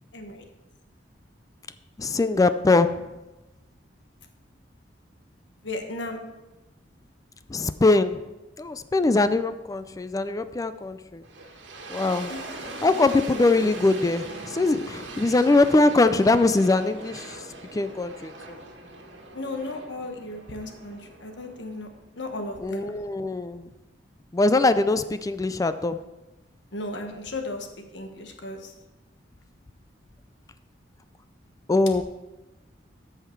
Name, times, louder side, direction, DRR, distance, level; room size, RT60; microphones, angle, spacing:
voice 1, 0.1-0.4 5.6-6.2 12.3-12.4 19.3-21.9 22.2-22.9 26.7-27.7 27.9-28.7, left 2 dB, 70° left, 5 dB, 1.3 m, -35 dB
voice 2, 2.0-2.9 7.5-8.2 8.6-11.2 11.9-12.3 12.8-17.4 17.7-18.6 22.6-23.7 24.3-26.0 31.7-32.0, left 2 dB, 20° left, 12 dB, 0.4 m, -22 dB
sound 1, 11.2-22.2, right 2 dB, 75° right, 1.6 m, -40 dB
14.0 x 5.8 x 4.5 m, 1.1 s
head